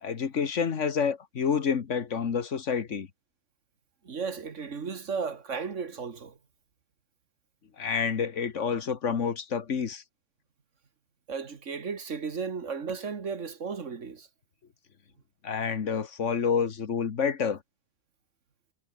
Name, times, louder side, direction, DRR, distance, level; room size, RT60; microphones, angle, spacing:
voice 1, 0.0-3.1 7.8-10.0 15.4-17.6, left 6 dB, 65° left, 1.7 m, -28 dB
voice 2, 4.0-6.4 11.3-14.3, right 5 dB, 65° right, 2.0 m, -34 dB
omnidirectional pair, 1.4 m